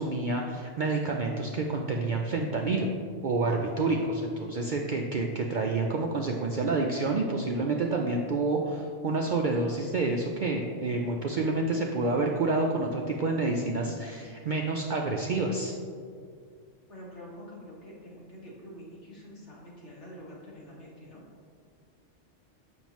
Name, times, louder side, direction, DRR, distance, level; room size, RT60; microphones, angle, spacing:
voice 1, 0.0-2.9 3.2-15.7, right 3 dB, 60° right, 0 dB, 0.5 m, -28 dB
voice 2, 16.9-21.2, equal, 65° left, -5 dB, 1.9 m, -46 dB
7.0 x 6.2 x 3.0 m, 2.1 s
omnidirectional pair, 1.3 m